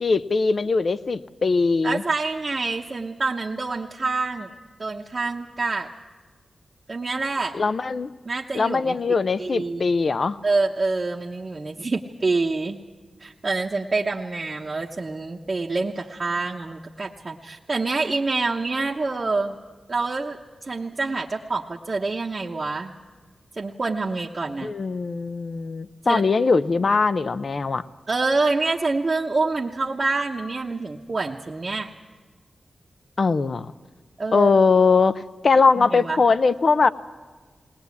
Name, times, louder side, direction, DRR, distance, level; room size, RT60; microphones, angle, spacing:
voice 1, 0.0-2.0 7.5-8.1 8.5-10.4 24.6-27.8 33.2-33.7 34.3-36.9, left 4 dB, 55° left, 14 dB, 0.6 m, -21 dB
voice 2, 1.8-4.5 4.8-5.9 6.9-7.6 8.2-9.0 9.4-9.9 10.4-12.8 13.2-19.6 19.9-22.9 23.6-24.7 26.0-26.2 28.1-31.9 34.2-34.5 35.8-36.2, right 3 dB, 45° right, -2 dB, 1.0 m, -26 dB
20.0 x 19.0 x 8.3 m, 1.4 s
cardioid pair, 60°, 0 cm